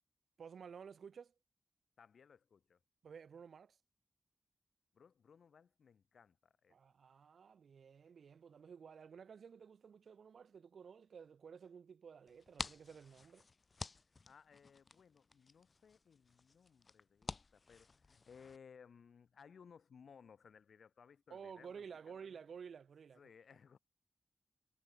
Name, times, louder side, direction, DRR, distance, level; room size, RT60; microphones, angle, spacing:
voice 1, 0.4-1.3 3.0-3.8 6.7-13.5 21.3-23.3, right 6 dB, 85° right, 2.2 m, -53 dB
voice 2, 2.0-2.8 4.9-6.7 14.2-22.2 23.2-23.8, left 6 dB, 85° left, 6.3 m, -62 dB
sound 1, 12.3-18.6, left 4 dB, 40° left, 1.5 m, -51 dB
wide cardioid pair, 115°, 0 cm